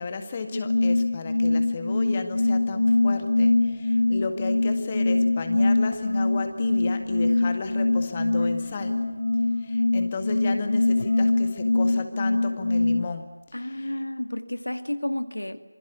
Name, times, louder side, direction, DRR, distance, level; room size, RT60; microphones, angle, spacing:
voice 1, 0.0-9.0 9.6-13.3 13.7-13.9, left 4 dB, 20° left, 6 dB, 1.9 m, -33 dB
sound 1, 0.5-13.1, left 2 dB, 50° left, 1.0 m, -23 dB
sound 2, 2.7-9.6, right 4 dB, 20° right, 2.3 m, -51 dB
voice 2, 13.5-15.6, left 1 dB, 75° left, 9 dB, 2.1 m, -31 dB
27.0 x 22.0 x 8.3 m, 1.0 s
figure-of-eight pair, 165°, 0 cm